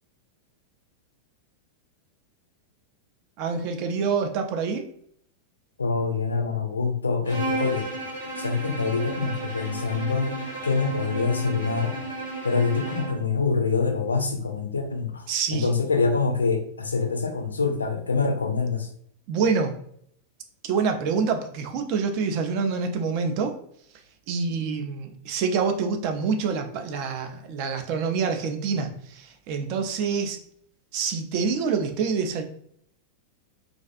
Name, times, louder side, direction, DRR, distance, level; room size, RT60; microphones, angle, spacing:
voice 1, 3.4-4.9 15.3-15.7 19.3-19.8 20.6-23.6 24.3-30.4 30.9-32.4, right 5 dB, 45° right, 5 dB, 0.4 m, -26 dB
voice 2, 5.8-7.9 8.4-10.4 10.6-12.0 12.4-18.9, left 4 dB, 75° left, 5 dB, 0.3 m, -25 dB
Bowed string instrument, 7.2-13.3, right 2 dB, 85° right, 1.4 m, -33 dB
2.4 x 2.4 x 2.3 m, 0.67 s
figure-of-eight pair, 90°, 0 cm